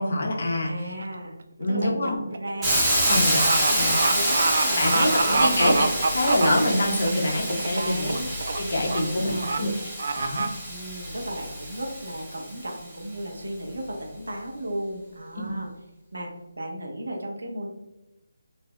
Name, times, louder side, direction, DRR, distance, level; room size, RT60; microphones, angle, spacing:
voice 1, 0.0-0.7 1.6-2.2 3.1-3.4 3.8-3.9 4.8-5.7 6.1-8.2 8.6-9.7 10.2-10.5 15.4-15.5, left 1 dB, 55° left, 0 dB, 0.9 m, -25 dB
voice 2, 0.6-1.4 1.7-2.8 3.1-5.7 7.7-8.3 9.0-9.7 10.7-15.7 16.1-17.7, right 1 dB, 85° right, 0 dB, 1.0 m, -35 dB
sound 1, 1.0-1.3 1.6-7.1 7.5-7.8 8.1-8.6 8.9-9.0 9.4-9.6 10.0-10.5, right 3 dB, 55° right, 0.3 m, -26 dB
Hiss, 2.6-12.5, right 1 dB, 10° right, 0.7 m, -27 dB
4.2 x 2.6 x 2.2 m, 0.95 s
figure-of-eight pair, 165°, 0 cm